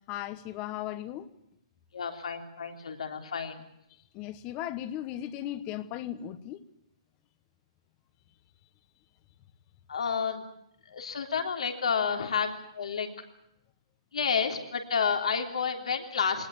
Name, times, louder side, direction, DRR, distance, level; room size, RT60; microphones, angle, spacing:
voice 1, 0.1-1.3 4.1-6.6, left 12 dB, 25° left, 1.2 m, -36 dB
voice 2, 1.9-3.6 9.9-10.4 10.8-13.1 14.1-16.5, left 6 dB, 85° left, 3.4 m, -30 dB
21.5 x 19.5 x 8.8 m
hypercardioid pair, 155°, 3 cm